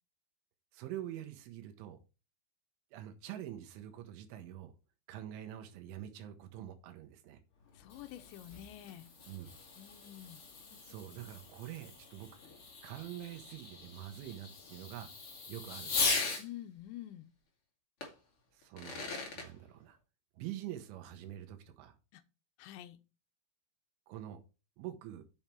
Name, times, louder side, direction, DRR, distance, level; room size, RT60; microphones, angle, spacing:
voice 1, 0.7-2.0 2.9-4.7 5.1-7.4 9.3-9.5 10.8-12.3 12.8-15.1 15.5-16.2 18.5-20.0 20.4-22.0 24.1-24.4 24.8-25.2, right 12 dB, 90° right, 3.6 m, -45 dB
Fireworks, 7.6-16.5 18.0-18.1 18.6-19.5, left 4 dB, 40° left, 2.2 m, -40 dB
voice 2, 7.8-9.1 9.8-10.4 16.4-17.3 22.1-22.2 22.6-23.0, left 13 dB, 80° left, 2.9 m, -48 dB
7.4 x 7.1 x 4.5 m
omnidirectional pair, 5.4 m